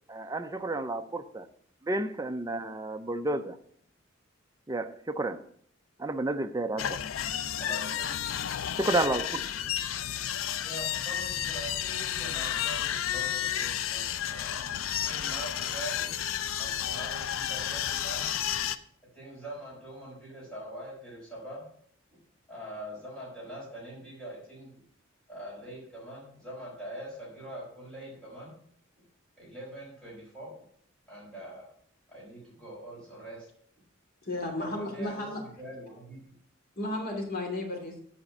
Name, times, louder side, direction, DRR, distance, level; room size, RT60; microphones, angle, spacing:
voice 1, 0.1-1.5 1.9-3.6 4.7-5.4 6.0-7.0 8.8-9.4, right 2 dB, 15° right, 9 dB, 0.5 m, -31 dB
sound 1, 6.8-18.8, left 10 dB, 70° left, 0.5 m, -32 dB
voice 2, 7.6-8.3 10.6-14.7 15.0-18.2 19.1-21.6 22.5-24.7 25.3-28.5 29.4-30.5 31.1-31.6 32.1-33.5 34.6-36.2, right 1 dB, 5° left, -6 dB, 4.9 m, -43 dB
voice 3, 34.2-35.4 36.8-38.0, left 1 dB, 45° left, 0 dB, 2.7 m, -33 dB
8.6 x 5.2 x 7.5 m, 0.63 s
head